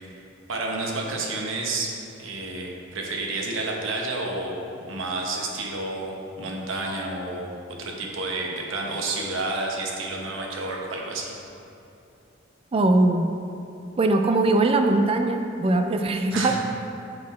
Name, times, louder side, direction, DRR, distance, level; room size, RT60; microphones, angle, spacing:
voice 1, 0.5-7.5 7.8-11.4 16.3-16.6, right 2 dB, 70° right, -1 dB, 0.9 m, -30 dB
voice 2, 12.7-13.3 14.0-16.6, right 2 dB, 30° right, 5 dB, 0.3 m, -21 dB
6.6 x 4.1 x 4.1 m, 2.7 s
head